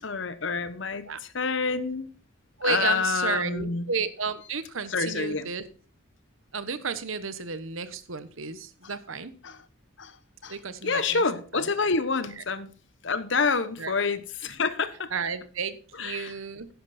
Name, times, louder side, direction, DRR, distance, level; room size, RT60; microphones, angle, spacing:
voice 1, 0.0-2.1 2.6-3.9 4.9-5.5 8.8-8.9 9.4-9.6 10.0-10.2 10.4-10.6 10.8-12.7 13.0-15.1 15.9-16.3, left 4 dB, 65° left, 1.0 m, -28 dB
voice 2, 2.6-5.6 6.5-9.3 10.5-11.2 13.8-13.9 15.1-16.7, right 5 dB, 80° right, 1.2 m, -32 dB
11.0 x 10.5 x 4.3 m
head